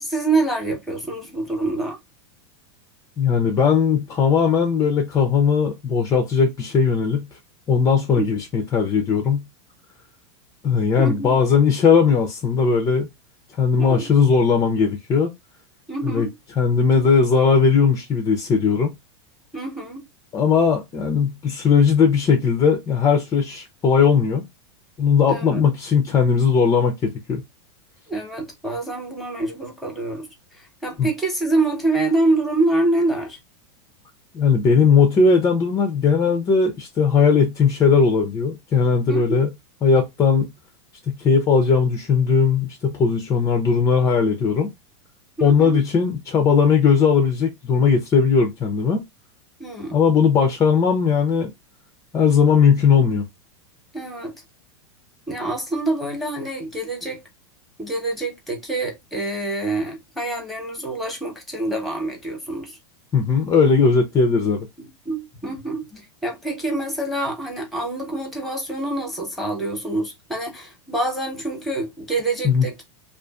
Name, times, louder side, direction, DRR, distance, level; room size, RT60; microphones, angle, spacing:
voice 1, 0.0-2.0 8.1-8.3 11.0-11.4 13.8-14.1 15.9-16.3 19.5-20.1 25.3-25.6 28.1-30.3 30.8-33.4 39.1-39.4 45.4-45.8 49.6-50.0 53.9-54.3 55.3-57.2 57.8-62.8 65.0-72.8, right 2 dB, ahead, 0.9 m, -26 dB
voice 2, 3.2-7.3 7.7-9.4 10.6-13.1 13.6-15.3 16.0-16.3 16.6-18.9 20.3-24.4 25.0-27.4 31.0-31.1 34.3-39.5 39.8-40.5 41.1-44.7 45.4-49.0 49.9-51.5 52.1-53.2 63.1-64.7 72.4-72.6, left 5 dB, 20° left, 0.5 m, -18 dB
2.4 x 2.4 x 2.3 m
hypercardioid pair, 125°, 15 cm